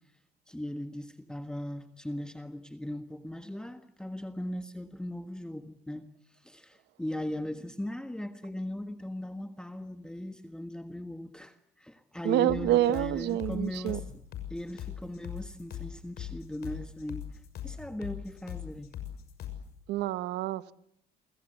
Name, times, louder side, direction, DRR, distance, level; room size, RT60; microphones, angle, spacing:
voice 1, 0.5-14.0 14.5-18.9, left 1 dB, 5° left, 1.5 m, -38 dB
voice 2, 12.2-14.0 19.9-20.7, right 14 dB, 85° right, 1.1 m, -27 dB
sound 1, 12.5-19.7, left 10 dB, 70° left, 6.5 m, -40 dB
29.0 x 23.0 x 8.0 m
cardioid pair, 110°, 17 cm